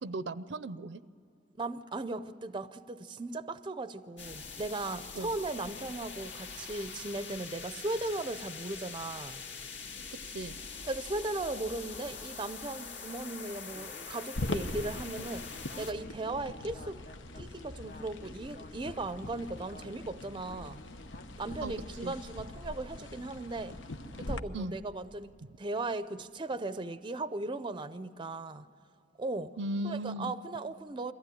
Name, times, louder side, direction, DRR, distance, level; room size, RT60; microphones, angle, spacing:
voice 1, 0.0-1.0 5.1-5.3 10.3-10.6 21.6-21.7 22.0-22.1 24.5-24.8 29.6-30.3, right 1 dB, 70° right, 0.6 m, -36 dB
voice 2, 1.5-9.4 10.9-17.0 17.4-20.8 21.4-23.8 24.2-28.7 29.2-29.5 29.8-31.1, right 2 dB, 25° right, 0.5 m, -37 dB
sound 1, 4.2-15.9, left 5 dB, 70° left, 2.2 m, -44 dB
Speech synthesizer, 13.7-22.0, left 2 dB, 50° left, 0.8 m, -53 dB
sound 2, 14.4-24.4, left 2 dB, 85° left, 1.0 m, -42 dB
22.5 x 15.5 x 9.9 m
head